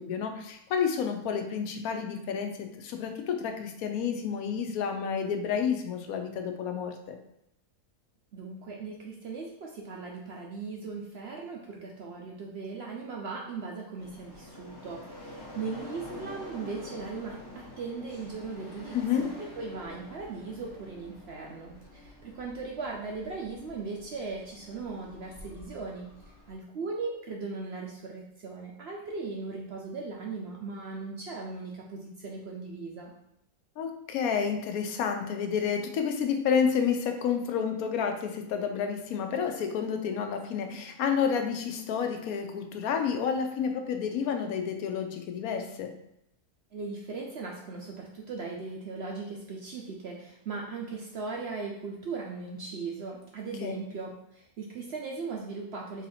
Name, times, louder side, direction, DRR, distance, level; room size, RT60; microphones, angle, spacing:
voice 1, 0.0-7.2 18.9-19.3 33.8-45.9 53.6-53.7, left 7 dB, 80° left, 5 dB, 1.0 m, -30 dB
voice 2, 8.3-19.3 19.6-26.1 26.5-33.1 46.7-56.1, right 4 dB, 65° right, -1 dB, 0.6 m, -38 dB
sound 1, 14.0-26.5, left 1 dB, 25° left, 0.6 m, -47 dB
3.9 x 2.7 x 4.1 m, 0.79 s
omnidirectional pair, 1.5 m